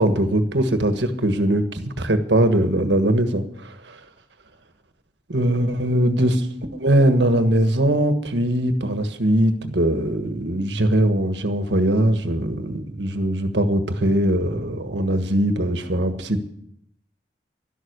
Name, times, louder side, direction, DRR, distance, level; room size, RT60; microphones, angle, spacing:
voice 1, 0.0-4.0 5.3-6.5 6.7-16.5, right 1 dB, 75° right, 8 dB, 1.5 m, -21 dB
12.0 x 11.5 x 6.6 m, 0.72 s
head